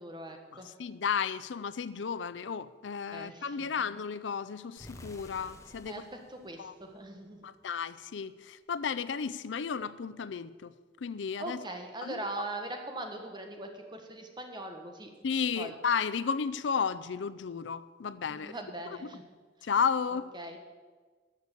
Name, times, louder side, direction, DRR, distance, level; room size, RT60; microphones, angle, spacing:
voice 1, 0.0-0.7 3.1-3.9 5.8-7.4 11.4-15.1 15.6-15.7 18.3-19.2 19.6-19.7 20.1-20.6, right 2 dB, 25° right, 1.5 m, -41 dB
voice 2, 0.5-6.0 6.6-6.7 7.4-10.7 11.0-11.6 12.0-12.2 15.2-18.6 18.9-19.0 19.6-20.3, left 6 dB, 90° left, 0.5 m, -33 dB
sound 1, 4.8-7.6, left 1 dB, 15° left, 1.0 m, -52 dB
13.0 x 6.8 x 8.2 m
head